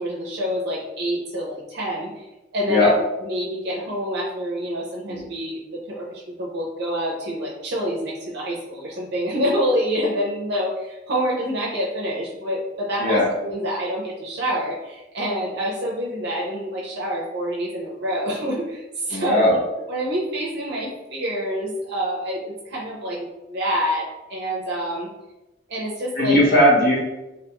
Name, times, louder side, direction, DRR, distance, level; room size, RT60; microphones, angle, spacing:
voice 1, 0.0-2.3 2.5-2.9 3.2-5.6 5.9-19.6 19.9-25.1 25.7-26.4, equal, 60° right, -3 dB, 0.5 m, -27 dB
voice 2, 19.1-19.6 26.2-27.1, left 1 dB, 55° left, -4 dB, 0.9 m, -17 dB
2.4 x 2.2 x 2.9 m, 1.0 s
head